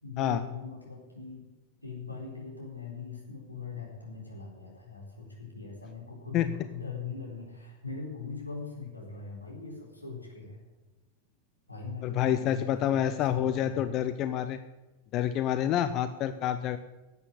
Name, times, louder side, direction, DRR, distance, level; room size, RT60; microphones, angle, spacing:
voice 1, 0.0-1.5 1.8-10.6 11.7-13.9, left 4 dB, 85° left, -3 dB, 4.1 m, -41 dB
voice 2, 12.0-14.6 15.1-16.8, left 11 dB, 35° left, 11 dB, 0.6 m, -28 dB
11.0 x 8.3 x 8.8 m, 1.1 s
figure-of-eight pair, 90°, 0 cm